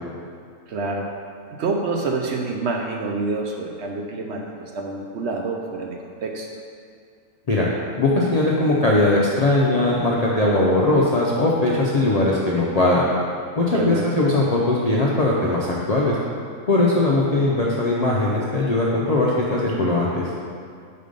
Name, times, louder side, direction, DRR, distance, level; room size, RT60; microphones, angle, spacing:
voice 1, 0.7-1.1 1.6-6.5 13.7-14.1, right 3 dB, 65° right, 1 dB, 0.7 m, -27 dB
voice 2, 8.0-13.1 13.6-16.1 16.7-20.2, left 2 dB, 50° left, -5 dB, 0.4 m, -20 dB
5.3 x 4.3 x 5.1 m, 2.2 s
omnidirectional pair, 1.4 m